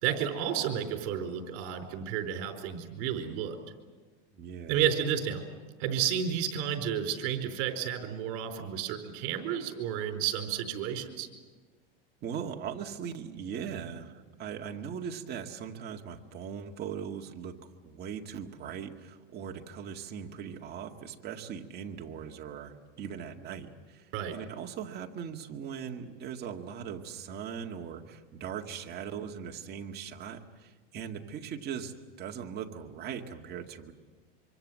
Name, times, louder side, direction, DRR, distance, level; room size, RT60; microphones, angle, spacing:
voice 1, 0.0-3.6 4.7-5.4 5.8-11.3 24.1-24.4, right 9 dB, 60° right, 6 dB, 4.4 m, -31 dB
voice 2, 4.3-4.8 12.2-17.6 17.8-33.9, right 7 dB, 35° right, 2 dB, 2.1 m, -40 dB
25.5 x 25.0 x 7.7 m, 1.4 s
supercardioid pair, 150°, 29 cm